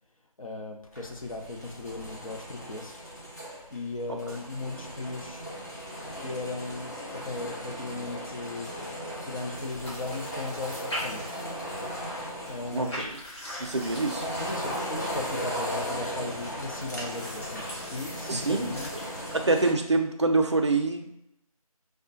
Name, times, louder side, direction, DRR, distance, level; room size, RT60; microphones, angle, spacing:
voice 1, 0.4-3.1 3.7-5.5 6.1-8.7 9.2-11.3 12.5-13.1 14.3-18.9, left 2 dB, 65° left, 2 dB, 0.7 m, -37 dB
sound 1, 0.9-19.7, equal, 30° left, 0.5 m, -37 dB
sound 2, 9.5-19.4, equal, 50° left, 1.3 m, -42 dB
voice 2, 12.7-13.1 13.6-14.2 18.3-18.8 19.3-21.1, right 3 dB, 50° right, 4 dB, 0.5 m, -25 dB
4.9 x 2.1 x 2.8 m, 0.78 s
figure-of-eight pair, 165°, 19 cm